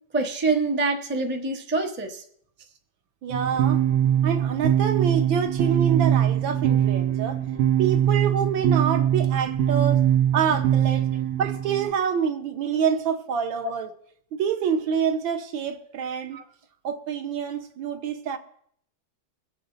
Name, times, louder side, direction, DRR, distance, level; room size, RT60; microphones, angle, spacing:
voice 1, 0.1-2.2 13.6-13.7 16.3-16.4, right 3 dB, 10° right, 0.5 m, -25 dB
voice 2, 3.2-3.8 4.2-7.4 7.8-10.0 10.3-11.1 11.4-13.9 14.3-16.4 16.8-18.4, right 7 dB, 70° right, 1.7 m, -26 dB
sound 1, 3.3-11.9, right 10 dB, 90° right, 1.7 m, -22 dB
22.5 x 7.7 x 3.9 m
omnidirectional pair, 2.2 m